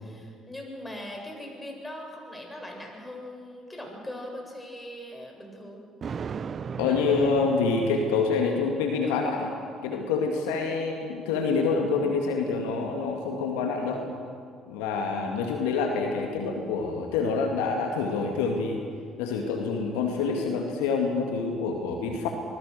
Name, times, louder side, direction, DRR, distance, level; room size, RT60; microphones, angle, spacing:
voice 1, 0.0-5.8, left 1 dB, 15° left, 1 dB, 7.7 m, -40 dB
Thunder, 6.0-8.5, right 6 dB, 45° right, 0.8 m, -36 dB
voice 2, 6.8-9.5 9.8-14.0 14.7-18.8 19.2-22.3, left 4 dB, 80° left, 2 dB, 2.3 m, -27 dB
25.5 x 20.5 x 6.8 m, 2.1 s
hypercardioid pair, 50°, 0 cm